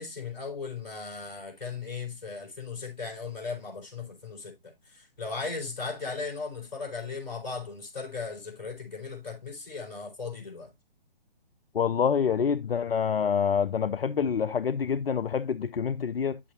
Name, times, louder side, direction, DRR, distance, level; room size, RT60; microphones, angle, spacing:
voice 1, 0.0-10.7, left 4 dB, 50° left, 4.5 m, -37 dB
voice 2, 11.7-16.4, left 7 dB, 80° left, 0.5 m, -26 dB
9.0 x 7.5 x 2.6 m
figure-of-eight pair, 140°, 29 cm